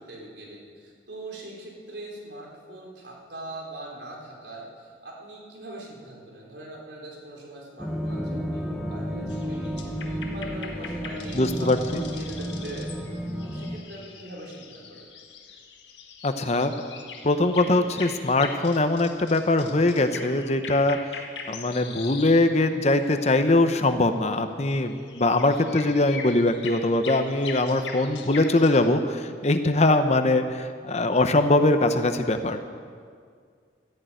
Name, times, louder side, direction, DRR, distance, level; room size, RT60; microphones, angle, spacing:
voice 1, 0.0-9.9 10.3-13.1 13.4-15.1 32.4-32.6, right 2 dB, 80° right, -2 dB, 3.9 m, -41 dB
sound 1, 7.8-13.8, equal, ahead, 1.2 m, -32 dB
sound 2, 9.3-22.5 22.8-23.2 24.9-28.8, left 5 dB, 85° left, 1.7 m, -41 dB
voice 2, 11.3-12.0 16.2-16.7 17.2-21.0 21.5-32.6, left 2 dB, 40° left, 8 dB, 0.8 m, -22 dB
13.5 x 11.0 x 9.0 m, 2.1 s
head